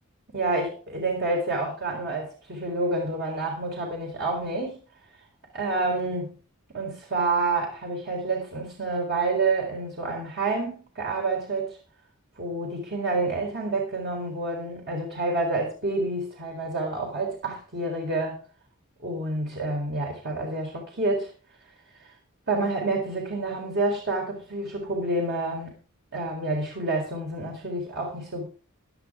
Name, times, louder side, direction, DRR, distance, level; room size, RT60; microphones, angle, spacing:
voice 1, 0.3-4.8 5.5-6.4 6.7-11.8 12.4-18.4 19.0-21.3 22.0-22.1 22.5-25.7 26.1-28.5, right 2 dB, 50° right, 4.2 m, -28 dB
16.5 x 11.5 x 3.8 m
head